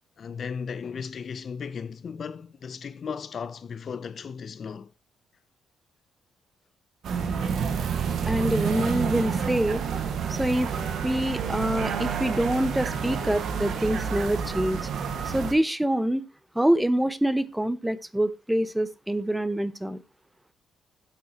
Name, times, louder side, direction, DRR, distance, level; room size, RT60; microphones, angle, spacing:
voice 1, 0.2-4.9 7.4-7.5, left 6 dB, 50° left, 0.7 m, -36 dB
sound 1, 7.0-15.5, right 6 dB, 65° right, 1.7 m, -29 dB
voice 2, 8.3-9.8 10.3-10.7 11.0-14.9 15.2-16.2 16.5-20.0, right 1 dB, 5° right, 0.7 m, -25 dB
12.5 x 8.3 x 2.9 m
cardioid pair, 90°, 0 cm